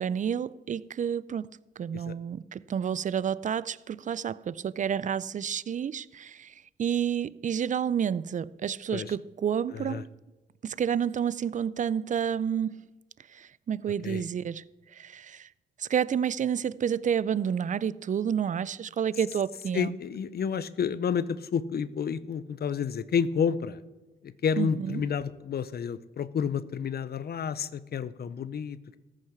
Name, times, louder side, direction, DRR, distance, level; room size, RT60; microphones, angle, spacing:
voice 1, 0.0-1.5 1.8-10.0 10.6-12.8 13.3-14.6 14.9-15.5 15.8-19.9 24.6-25.0, right 8 dB, 40° right, 0.4 m, -30 dB
voice 2, 9.7-10.0 14.0-14.2 19.7-23.8 24.2-29.0, left 7 dB, 55° left, 0.6 m, -30 dB
14.0 x 6.5 x 5.9 m
supercardioid pair, 60°, 20 cm